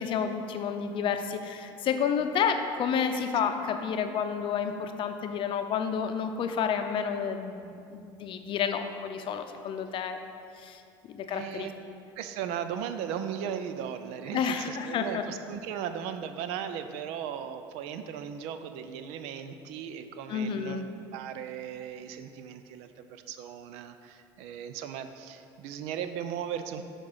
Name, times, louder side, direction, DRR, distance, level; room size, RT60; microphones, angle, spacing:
voice 1, 0.0-10.2 10.6-10.8 11.1-11.7 14.3-15.2 20.3-20.9, left 7 dB, 50° left, 7 dB, 0.6 m, -30 dB
voice 2, 11.3-11.7 12.2-26.8, right 8 dB, 70° right, 9 dB, 0.5 m, -37 dB
6.6 x 5.2 x 5.5 m, 2.5 s
supercardioid pair, 90°, 11 cm